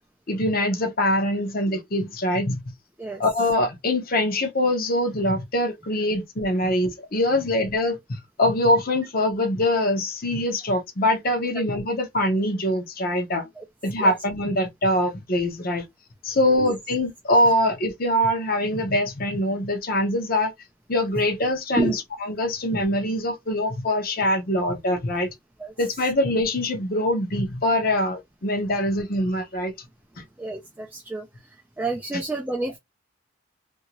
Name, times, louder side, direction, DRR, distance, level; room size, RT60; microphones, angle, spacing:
voice 1, 0.3-2.6 3.2-13.4 13.8-15.8 16.2-20.5 20.9-25.3 25.8-29.7 32.1-32.2, left 1 dB, 45° left, 0.8 m, -23 dB
voice 2, 30.4-31.3 31.8-32.8, right 2 dB, 10° right, 0.3 m, -29 dB
2.7 x 2.6 x 2.9 m
head